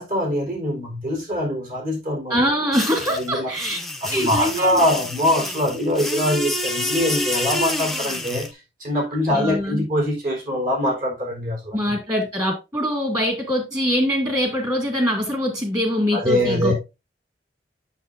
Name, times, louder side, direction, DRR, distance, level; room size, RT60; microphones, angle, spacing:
voice 1, 0.0-2.4 3.1-3.5 4.0-11.8 16.1-16.7, left 1 dB, 50° right, 4.2 m, -23 dB
voice 2, 2.3-3.8 4.1-4.9 5.7-5.9 9.3-9.8 11.7-16.7, equal, 20° right, 2.3 m, -23 dB
sound 1, 2.7-8.5, left 1 dB, ahead, 0.8 m, -28 dB
8.2 x 7.0 x 2.6 m
head